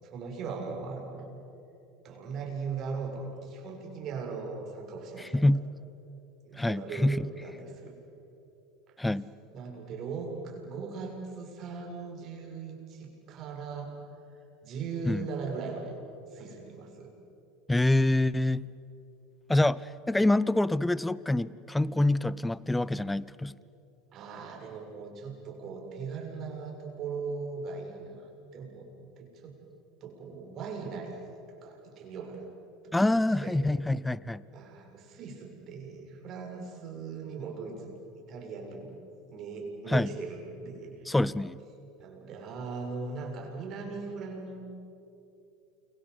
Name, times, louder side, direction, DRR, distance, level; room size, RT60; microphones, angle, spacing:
voice 1, 0.0-1.4 2.0-5.5 6.4-8.0 9.5-13.9 14.6-15.9 16.3-17.1 24.1-28.9 29.2-29.5 30.0-31.2 31.6-32.5 32.8-33.6 34.5-39.0 39.3-41.1 42.0-44.6, right 4 dB, 45° right, 7.3 m, -39 dB
voice 2, 6.5-7.3 9.0-9.3 15.0-15.3 17.7-18.7 19.5-23.6 32.9-34.4 39.9-40.1 41.1-41.6, left 1 dB, 10° left, 0.7 m, -26 dB
29.5 x 24.0 x 8.3 m
hypercardioid pair, 90°, 0 cm